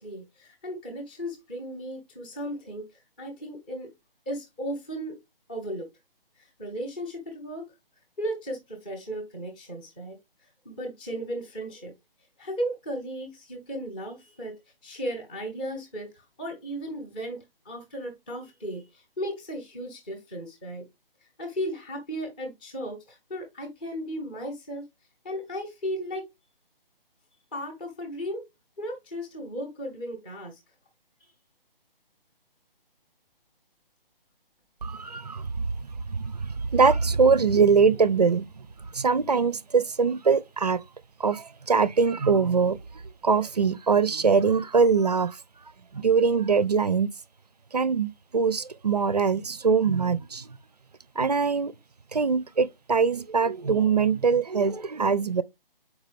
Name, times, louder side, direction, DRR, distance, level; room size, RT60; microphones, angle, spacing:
voice 1, 0.0-3.9 4.3-5.2 5.5-5.9 6.4-7.7 8.2-10.2 10.6-11.9 12.4-14.6 14.8-20.8 21.4-24.8 25.2-26.2 27.5-28.4 28.8-30.6 31.2-31.3, equal, 10° left, 0.6 m, -35 dB
voice 2, 34.8-38.6 38.9-40.8 41.2-42.8 43.2-45.4 45.9-47.1 47.7-50.5 51.2-51.7 52.1-55.4, right 5 dB, 45° right, 0.4 m, -23 dB
6.4 x 4.7 x 3.3 m
figure-of-eight pair, 150°, 29 cm